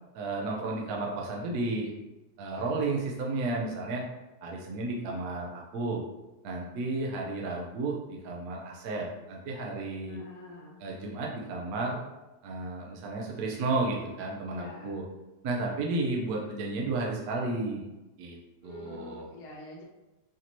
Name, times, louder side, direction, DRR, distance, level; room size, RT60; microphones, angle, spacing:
voice 1, 0.1-1.9 2.4-4.0 4.4-6.0 6.4-10.2 10.8-12.0 12.4-15.0 15.4-17.8 18.2-18.4 18.6-19.3, right 2 dB, 70° right, -1 dB, 1.1 m, -32 dB
voice 2, 10.0-10.8 14.5-15.0 18.6-19.8, left 2 dB, 85° left, -2 dB, 1.5 m, -47 dB
5.1 x 2.8 x 2.9 m, 1.0 s
omnidirectional pair, 1.7 m